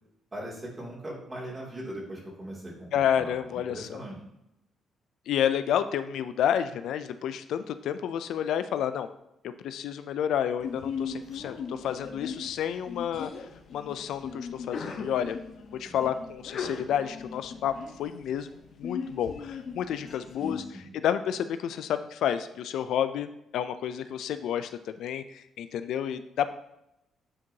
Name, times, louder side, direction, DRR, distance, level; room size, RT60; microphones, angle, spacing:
voice 1, 0.3-2.9 3.2-4.2 11.4-11.6 15.9-16.0 20.4-20.9, right 1 dB, 25° right, -4 dB, 2.5 m, -40 dB
voice 2, 2.9-4.0 5.3-9.1 9.4-15.4 15.7-17.7 18.0-18.5 18.8-20.6 20.9-26.5, left 9 dB, 80° left, 11 dB, 0.3 m, -30 dB
Sneeze, 10.6-20.6, left 6 dB, 65° left, 0.9 m, -38 dB
8.6 x 4.5 x 2.8 m, 0.85 s
cardioid pair, 90°, 0 cm